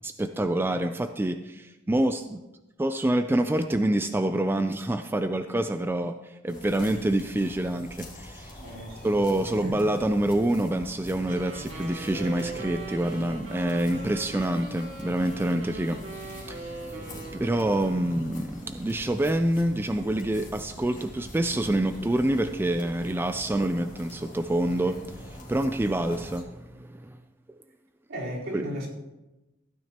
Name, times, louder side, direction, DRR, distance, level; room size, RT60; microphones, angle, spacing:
voice 1, 0.0-2.4 2.8-8.6 9.0-27.2 28.5-28.6, right 1 dB, 10° right, 8 dB, 0.3 m, -27 dB
sound 1, 6.5-26.4, left 1 dB, 40° left, 2.1 m, -45 dB
voice 2, 8.6-9.8 16.9-17.4 18.1-18.3 24.8-25.0 28.1-28.9, equal, 75° right, -6 dB, 4.0 m, -38 dB
Wind instrument woodwind instrument, 11.2-18.7, right 2 dB, 90° right, 2.4 m, -41 dB
15.0 x 9.6 x 2.9 m, 1.0 s
head